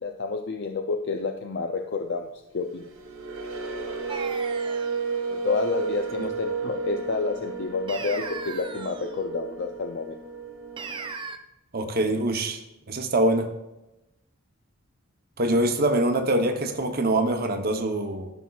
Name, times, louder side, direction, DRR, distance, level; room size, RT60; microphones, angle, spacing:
voice 1, 0.0-2.3 2.5-2.8 5.3-10.2, left 4 dB, 55° left, 4 dB, 0.4 m, -29 dB
sound 1, 2.7-11.1, right 5 dB, 70° right, 1.1 m, -33 dB
sound 2, 4.1-5.0 7.9-9.2 10.8-11.4, right 4 dB, 20° right, 0.4 m, -37 dB
voice 2, 11.7-12.6 12.9-13.5 15.4-18.3, right 1 dB, 45° right, 5 dB, 0.8 m, -24 dB
13.0 x 5.9 x 2.4 m, 0.96 s
head